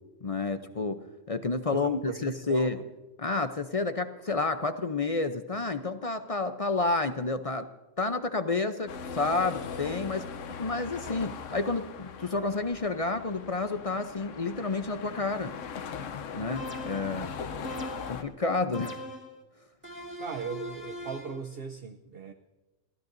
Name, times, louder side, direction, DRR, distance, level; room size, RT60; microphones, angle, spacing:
voice 1, 0.2-1.0 1.3-2.8 3.2-7.7 8.0-10.3 10.6-15.6 16.3-17.3 18.1-19.0, left 3 dB, 40° left, 9 dB, 0.5 m, -30 dB
voice 2, 1.7-2.8 17.0-17.3 20.2-22.3, right 6 dB, 55° right, 7 dB, 0.9 m, -39 dB
sound 1, 8.9-18.2, left 6 dB, 70° left, 1.1 m, -40 dB
sound 2, 16.6-17.2 17.6-18.3 18.7-19.4 19.8-21.4, equal, 10° right, 2.2 m, -40 dB
28.0 x 16.0 x 2.6 m, 1.2 s
omnidirectional pair, 1.4 m